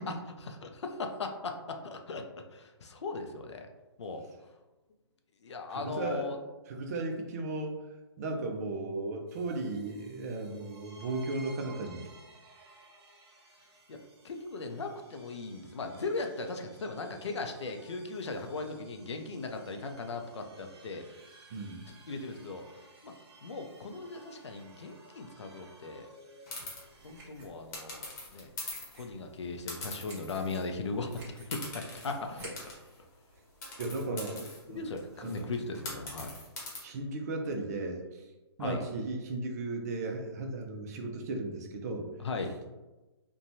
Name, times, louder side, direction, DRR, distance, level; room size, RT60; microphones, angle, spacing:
voice 1, 0.4-2.2 2.5-3.7 4.0-4.2 5.4-6.4 13.9-14.0 14.2-21.0 22.1-22.6 23.0-23.1 23.4-26.1 27.0-28.5 28.9-32.5 34.4-34.5 34.7-36.4 38.6-38.8 42.2-42.6, left 3 dB, 85° left, 5 dB, 0.5 m, -38 dB
voice 2, 5.7-6.3 6.7-7.8 8.2-12.1 21.5-21.8 33.8-34.4 34.7-34.8 35.2-35.5 36.8-38.2 38.6-42.1, right 2 dB, 35° right, 3 dB, 0.4 m, -35 dB
sound 1, 9.3-27.3, right 2 dB, 65° right, 0.8 m, -57 dB
sound 2, 26.5-26.8 27.7-29.0 29.7-30.7 31.0-31.1 31.5-33.0 33.6-36.8, left 2 dB, 35° left, 1.0 m, -43 dB
sound 3, 26.5-32.8, right 2 dB, 15° right, 0.8 m, -54 dB
2.9 x 2.2 x 2.6 m, 1.1 s
hypercardioid pair, 150°, 14 cm